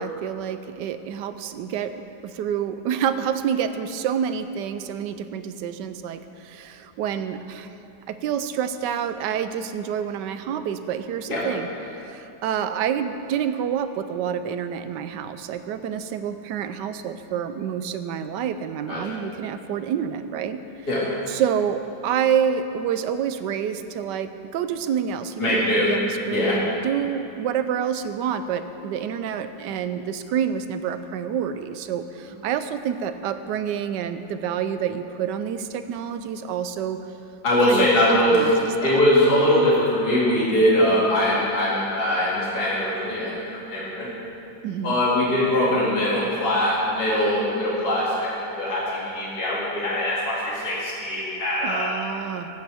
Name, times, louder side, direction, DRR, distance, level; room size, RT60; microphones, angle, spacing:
voice 1, 0.0-7.7 8.1-20.9 21.3-37.0 37.6-39.0 44.6-45.0 51.6-52.5, right 8 dB, 75° right, 10 dB, 1.2 m, -28 dB
voice 2, 18.9-19.2 20.9-21.0 25.4-25.9 26.3-26.6 37.4-38.5 38.8-44.1 44.8-51.9, left 1 dB, 60° left, -7 dB, 3.0 m, -22 dB
19.0 x 9.3 x 3.5 m, 2.8 s
omnidirectional pair, 2.0 m